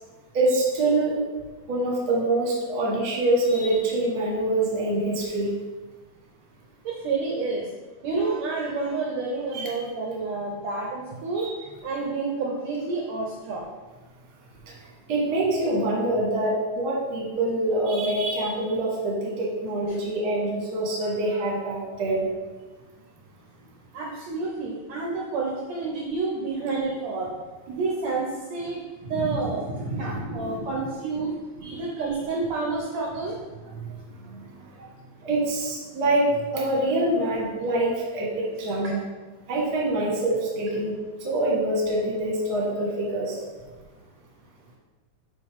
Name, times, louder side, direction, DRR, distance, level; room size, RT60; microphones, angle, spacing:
voice 1, 0.3-1.2 1.7-5.5 9.5-9.7 11.4-11.5 14.7-14.8 15.1-22.3 29.0-30.7 31.6-31.8 33.7-34.0 34.3-34.7 35.2-39.0 39.5-40.9 41.2-43.4, right 1 dB, 45° right, -4 dB, 1.4 m, -25 dB
voice 2, 6.9-7.7 8.0-11.5 11.8-13.6 21.0-21.1 23.9-27.4 27.7-28.8 29.1-29.7 30.0-33.4 34.8-34.9 38.8-38.9, right 3 dB, 70° right, -2 dB, 1.7 m, -29 dB
7.6 x 4.5 x 3.5 m, 1.3 s
omnidirectional pair, 3.7 m